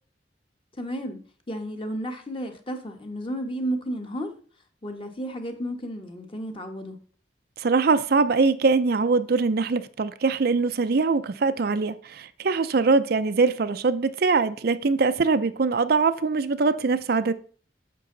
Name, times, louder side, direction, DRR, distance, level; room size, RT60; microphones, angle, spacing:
voice 1, 0.8-1.2 1.5-4.3 4.8-7.0, equal, 30° left, 1.3 m, -32 dB
voice 2, 7.6-17.3, right 4 dB, 55° right, 0.5 m, -22 dB
10.0 x 6.6 x 3.9 m
head